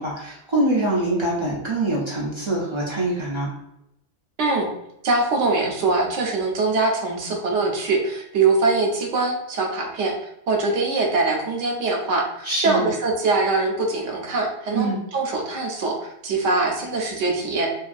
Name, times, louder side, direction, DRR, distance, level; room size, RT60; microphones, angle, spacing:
voice 1, 0.0-3.5 12.4-12.9 14.7-15.0, right 2 dB, 50° right, -5 dB, 0.3 m, -24 dB
voice 2, 4.4-4.7 5.0-10.1 10.5-17.7, right 3 dB, 85° right, 1 dB, 0.9 m, -23 dB
2.8 x 2.3 x 2.5 m, 0.83 s
omnidirectional pair, 1.2 m